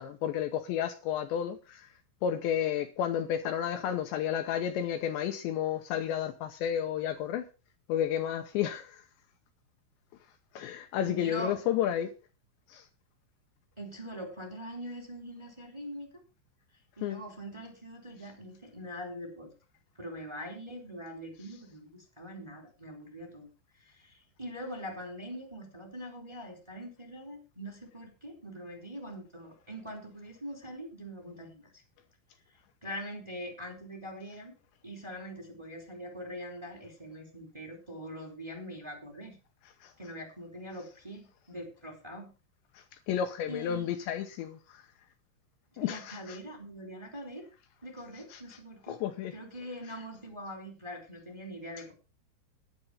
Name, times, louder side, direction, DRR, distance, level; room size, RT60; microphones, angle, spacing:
voice 1, 0.0-1.9 2.2-7.5 7.9-9.0 10.6-12.1 12.7-12.8 17.0-17.2 39.8-39.9 43.1-44.8 45.8-46.2 48.9-49.3, left 9 dB, 75° left, 3.0 m, -31 dB
voice 2, 11.0-11.6 13.8-16.2 17.0-19.5 20.0-23.5 23.8-31.8 32.8-34.5 34.8-39.4 40.0-42.3 43.5-43.9 45.7-47.5 47.8-49.0 49.3-51.9, equal, 5° right, 3.2 m, -43 dB
11.0 x 10.5 x 5.5 m
omnidirectional pair, 5.6 m